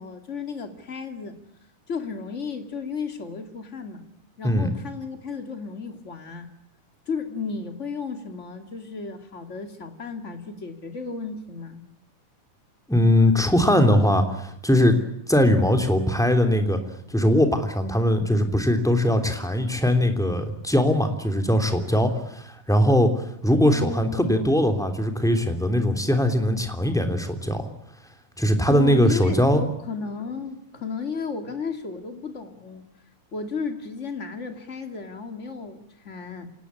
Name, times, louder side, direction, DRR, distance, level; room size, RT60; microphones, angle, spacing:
voice 1, 0.0-1.4 1.9-4.0 4.4-6.5 7.1-11.9 23.6-24.6 28.7-32.8 33.3-36.7, left 4 dB, 25° left, 6 dB, 2.5 m, -33 dB
voice 2, 4.4-4.8 12.9-15.0 15.3-16.8 17.1-27.7 28.4-29.7, left 1 dB, ahead, 5 dB, 2.7 m, -21 dB
27.0 x 19.0 x 8.4 m, 0.77 s
omnidirectional pair, 3.7 m